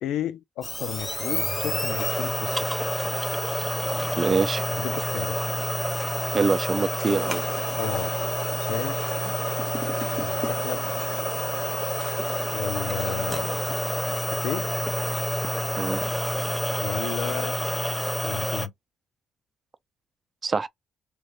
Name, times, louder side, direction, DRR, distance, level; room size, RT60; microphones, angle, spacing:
voice 1, 0.0-2.8 4.7-5.4 7.8-8.1 8.6-9.0 10.2-10.9 12.5-14.7 16.8-17.6 18.2-18.7, left 11 dB, 85° left, 0.5 m, -33 dB
sound 1, 0.6-18.7, left 1 dB, 10° left, 0.6 m, -28 dB
voice 2, 4.2-4.6 6.3-7.4 15.8-16.0 20.4-20.7, right 5 dB, 35° right, 0.6 m, -24 dB
3.1 x 2.6 x 4.4 m
cardioid pair, 90°, 0 cm